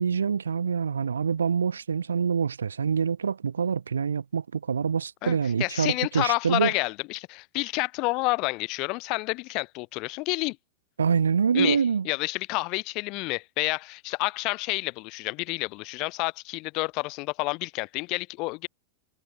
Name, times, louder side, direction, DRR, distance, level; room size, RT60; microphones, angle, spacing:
voice 1, 0.0-6.7 11.0-12.1, right 6 dB, 70° right, 0.4 m, -25 dB
voice 2, 5.2-10.6 11.5-11.8 12.0-18.7, left 25 dB, 40° left, 0.7 m, -29 dB
figure-of-eight pair, 90°, 0 cm